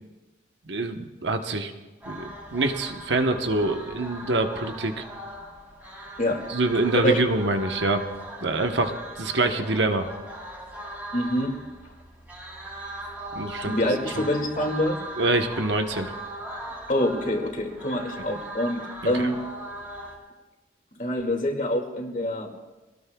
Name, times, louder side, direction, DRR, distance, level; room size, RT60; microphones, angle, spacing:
voice 1, 0.7-1.7 2.1-5.0 6.5-8.1 8.4-8.9 9.2-10.1 13.3-13.7 15.2-16.1 19.0-19.1, right 2 dB, 75° right, 5 dB, 1.2 m, -25 dB
sound 1, 2.0-20.2, right 1 dB, 10° right, 2.9 m, -39 dB
voice 2, 11.1-11.5 13.6-15.0 16.9-19.4 21.0-22.5, left 1 dB, 45° left, 1 dB, 2.3 m, -26 dB
26.0 x 19.0 x 2.4 m, 1.1 s
head